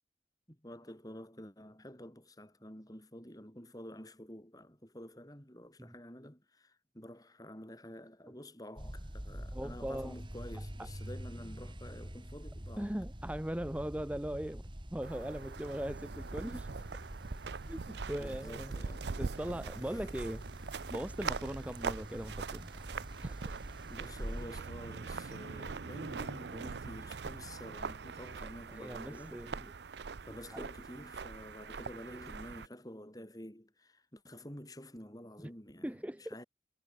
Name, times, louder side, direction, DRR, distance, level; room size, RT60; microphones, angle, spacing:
voice 1, 0.5-12.9 18.2-19.1 19.8-20.0 23.9-29.4 30.2-36.4, left 1 dB, 20° left, 7.0 m, -49 dB
sound 1, 8.8-24.5, equal, 30° right, 2.8 m, -46 dB
voice 2, 9.5-10.2 12.8-16.9 17.7-18.7 19.2-20.6 20.9-22.8 23.2-23.8 28.4-29.7 30.3-30.6 35.4-35.5 35.8-36.4, right 1 dB, 10° right, 0.7 m, -40 dB
sound 2, 15.0-32.7, right 5 dB, 75° right, 0.6 m, -42 dB
head